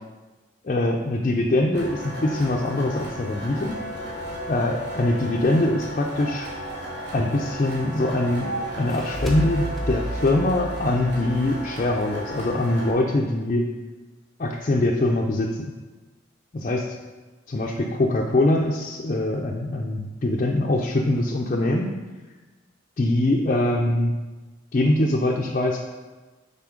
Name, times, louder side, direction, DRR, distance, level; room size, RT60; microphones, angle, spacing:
voice 1, 0.6-3.7 4.5-6.5 7.1-13.7 14.4-15.7 16.5-16.9 17.5-21.9 23.0-24.2 24.7-25.9, left 1 dB, 40° left, -1 dB, 0.4 m, -23 dB
sound 1, 1.7-12.9, equal, 60° right, 1.6 m, -35 dB
sound 2, 5.6-10.5, right 3 dB, 80° right, 0.8 m, -39 dB
sound 3, 8.6-12.0, equal, ahead, 0.7 m, -32 dB
5.9 x 4.0 x 5.1 m, 1.2 s
head